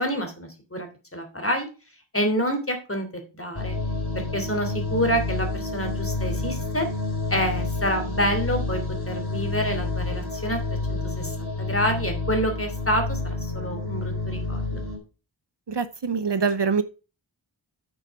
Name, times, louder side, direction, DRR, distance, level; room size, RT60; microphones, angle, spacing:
voice 1, 0.0-1.7 2.1-3.8 4.1-6.9 7.3-14.8, equal, 30° left, 5 dB, 3.1 m, -28 dB
sound 1, 3.5-15.0, left 2 dB, 50° left, 3.8 m, -29 dB
voice 2, 15.7-16.8, right 5 dB, 60° right, 13 dB, 0.8 m, -24 dB
8.9 x 6.5 x 4.8 m, 0.33 s
wide cardioid pair, 50°, 46 cm